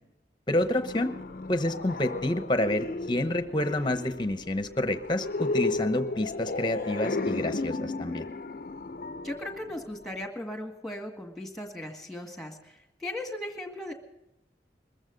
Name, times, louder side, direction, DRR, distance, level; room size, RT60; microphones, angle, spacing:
sound 1, 0.5-10.3, left 3 dB, 50° left, 0.5 m, -34 dB
voice 1, 0.5-1.1 1.5-8.3, left 1 dB, 25° left, 9 dB, 0.9 m, -28 dB
voice 2, 9.2-12.6 13.0-13.9, left 1 dB, ahead, 3 dB, 1.8 m, -37 dB
22.0 x 14.5 x 3.9 m, 0.84 s
head